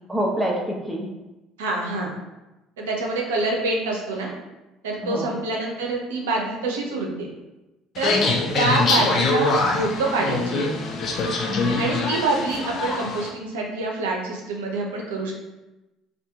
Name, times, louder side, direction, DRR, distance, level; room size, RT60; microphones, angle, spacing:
voice 1, 0.1-1.1 5.0-5.4 8.1-8.4 11.5-11.8, equal, 5° right, -2 dB, 0.9 m, -26 dB
voice 2, 1.6-2.1 2.8-4.3 4.8-7.3 8.0-8.2 8.5-10.7 11.8-15.3, right 2 dB, 85° right, -1 dB, 0.5 m, -26 dB
sound 1, 7.9-13.3, left 3 dB, 50° left, 0.5 m, -24 dB
2.7 x 2.5 x 3.4 m, 1.0 s
hypercardioid pair, 65°, 0 cm